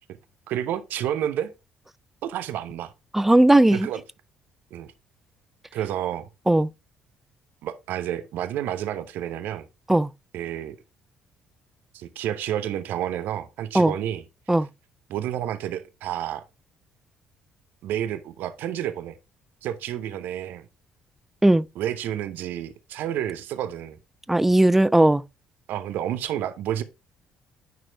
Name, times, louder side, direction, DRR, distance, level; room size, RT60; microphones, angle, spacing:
voice 1, 0.5-1.5 2.2-2.9 3.7-4.0 4.7-4.9 5.7-6.3 7.6-9.7 10.3-10.8 11.9-14.6 15.1-16.4 17.8-19.2 19.6-20.7 21.7-24.0 25.7-26.8, right 11 dB, 55° right, 0.7 m, -30 dB
voice 2, 3.1-3.9 6.5-6.7 9.9-10.1 13.7-13.9 14.5-14.7 21.4-21.6 24.3-25.2, right 1 dB, 5° right, 0.4 m, -17 dB
9.4 x 6.0 x 2.3 m
figure-of-eight pair, 45°, 4 cm